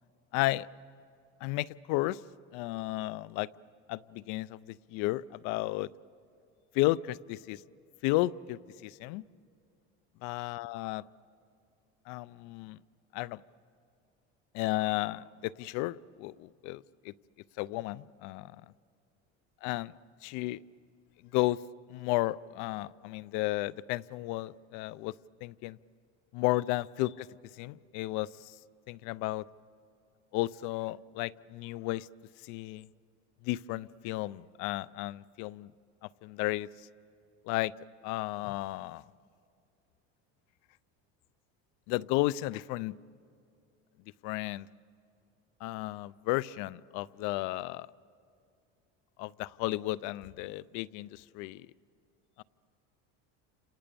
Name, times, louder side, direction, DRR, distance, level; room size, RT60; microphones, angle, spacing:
voice 1, 0.3-0.7 1.4-2.2 2.5-3.5 3.9-5.9 6.7-7.6 8.0-9.2 10.2-11.0 12.1-12.8 13.1-13.4 14.5-17.1 17.6-18.6 19.6-19.9 20.2-20.6 21.3-21.6 21.9-25.8 26.3-27.3 27.5-28.6 28.9-29.5 30.3-32.1 32.4-32.9 33.4-35.7 36.0-36.9 37.4-37.7 38.0-39.0 41.9-43.0 44.2-44.7 45.6-47.9 49.2-51.7 52.4-52.5, left 18 dB, 70° left, 20 dB, 0.6 m, -33 dB
30.0 x 27.0 x 6.9 m, 2.3 s
cardioid pair, 140°, 31 cm